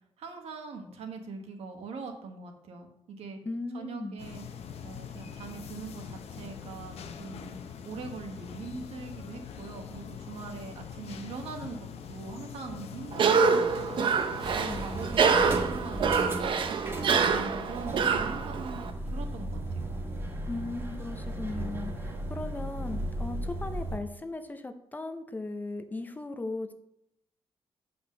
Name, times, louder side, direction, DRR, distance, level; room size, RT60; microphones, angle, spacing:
voice 1, 0.2-3.4 3.7-4.4 4.8-7.6 7.8-16.6 17.2-19.9, right 4 dB, 80° right, 3 dB, 1.4 m, -42 dB
voice 2, 3.4-4.2 14.7-15.0 20.5-26.7, left 2 dB, 15° left, 8 dB, 0.6 m, -37 dB
sound 1, 4.2-15.1, left 7 dB, 80° left, 0.8 m, -43 dB
Cough, 13.1-18.9, right 5 dB, 50° right, 0.7 m, -26 dB
sound 2, 14.4-24.0, right 1 dB, 25° right, 1.5 m, -36 dB
7.8 x 5.1 x 5.3 m, 0.77 s
wide cardioid pair, 155°, 10 cm